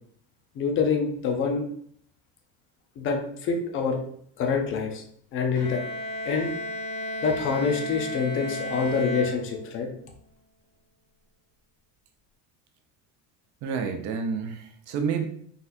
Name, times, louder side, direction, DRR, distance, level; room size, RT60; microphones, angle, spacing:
voice 1, 0.6-1.6 3.0-4.0 4.4-5.0 5.3-5.8 6.2-6.5 7.2-9.9, left 5 dB, 35° left, 3 dB, 0.6 m, -26 dB
Bowed string instrument, 5.5-10.0, equal, 60° left, 1.0 m, -34 dB
voice 2, 13.6-15.2, right 6 dB, 50° right, 6 dB, 0.6 m, -29 dB
4.1 x 4.1 x 2.6 m, 0.63 s
cardioid pair, 175°, 37 cm